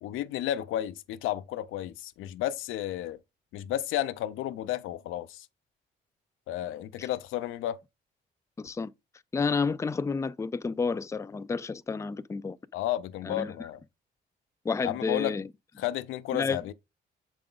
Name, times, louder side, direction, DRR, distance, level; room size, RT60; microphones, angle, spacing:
voice 1, 0.0-3.2 3.5-5.5 6.5-7.8 12.7-13.8 14.8-15.3 15.8-16.7, left 12 dB, 90° left, 0.5 m, -32 dB
voice 2, 8.6-8.9 9.3-12.6 13.2-13.7 14.6-15.5 16.3-16.6, left 4 dB, 15° left, 0.4 m, -30 dB
6.8 x 4.8 x 3.8 m
cardioid pair, 90°, 20 cm